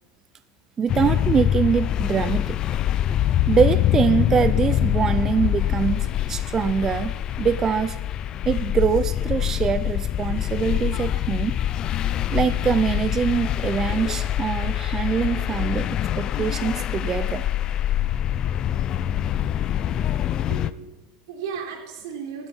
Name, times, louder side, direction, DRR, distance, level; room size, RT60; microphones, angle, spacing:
voice 1, 0.8-2.6 3.5-7.1 7.4-8.0 8.5-11.5 12.3-17.4, right 6 dB, 20° right, 13 dB, 0.4 m, -23 dB
sound 1, 0.9-20.7, left 11 dB, 30° left, 0.5 m, -24 dB
voice 2, 20.2-22.5, right 6 dB, 80° right, 3 dB, 3.4 m, -36 dB
15.5 x 12.0 x 5.7 m, 1.1 s
supercardioid pair, 150°, 2 cm